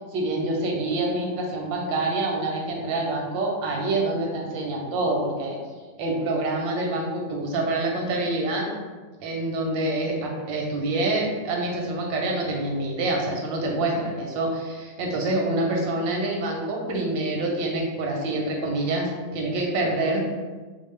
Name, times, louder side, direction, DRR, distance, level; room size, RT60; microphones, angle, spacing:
voice 1, 0.1-5.6 6.0-8.7 9.2-20.2, right 2 dB, 85° right, 0 dB, 1.4 m, -26 dB
4.4 x 2.0 x 3.2 m, 1.3 s
omnidirectional pair, 2.0 m